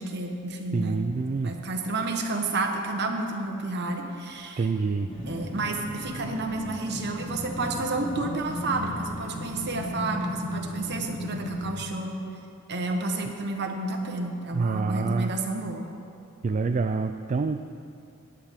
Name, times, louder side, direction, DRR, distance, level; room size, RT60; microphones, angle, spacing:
voice 1, 0.0-1.0 1.4-4.7 5.3-12.2 12.7-15.9, right 2 dB, 55° right, 3 dB, 1.2 m, -30 dB
voice 2, 0.7-1.6 4.6-5.1 14.5-15.3 16.4-17.6, right 4 dB, 35° right, 7 dB, 0.3 m, -26 dB
sound 1, 5.1-11.9, left 1 dB, 25° left, 2.7 m, -35 dB
16.0 x 10.0 x 3.6 m, 2.5 s
head